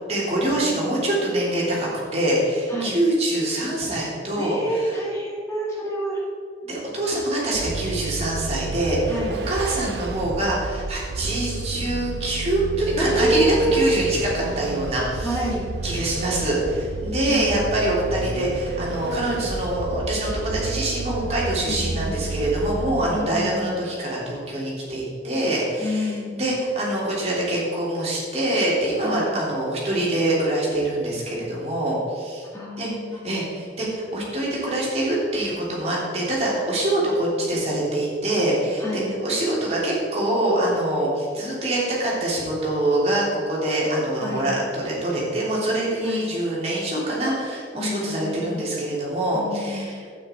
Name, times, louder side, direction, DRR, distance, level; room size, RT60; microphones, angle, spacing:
voice 1, 0.1-5.0 6.6-15.4 15.8-32.5 32.8-50.0, right 1 dB, 35° right, -5 dB, 3.1 m, -25 dB
voice 2, 4.4-6.2 9.1-9.4 13.0-14.0 15.2-15.6 17.3-17.5 21.7-22.1 23.1-23.7 25.8-26.3 29.0-29.3 32.5-33.4 38.8-39.1 44.2-44.5 46.0-46.3 47.7-48.6 49.3-49.8, right 1 dB, 15° left, -6 dB, 2.0 m, -27 dB
Vehicle, 7.5-23.5, right 3 dB, 65° right, 0.5 m, -31 dB
12.0 x 8.9 x 4.5 m, 2.2 s
head